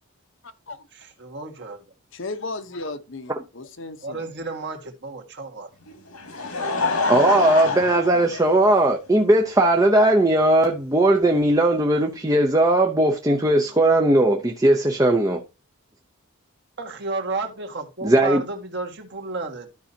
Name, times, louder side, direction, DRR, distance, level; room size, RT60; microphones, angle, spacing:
voice 1, 0.9-1.8 4.0-5.7 16.8-19.7, right 3 dB, 55° right, 1.8 m, -32 dB
voice 2, 2.1-4.3, left 3 dB, 60° left, 1.0 m, -34 dB
Laughter, 5.9-9.1 9.9-10.0 11.5-11.6, left 3 dB, 90° left, 2.2 m, -26 dB
voice 3, 7.1-15.4 18.0-18.4, right 1 dB, 15° right, 0.7 m, -18 dB
13.0 x 5.5 x 2.8 m
head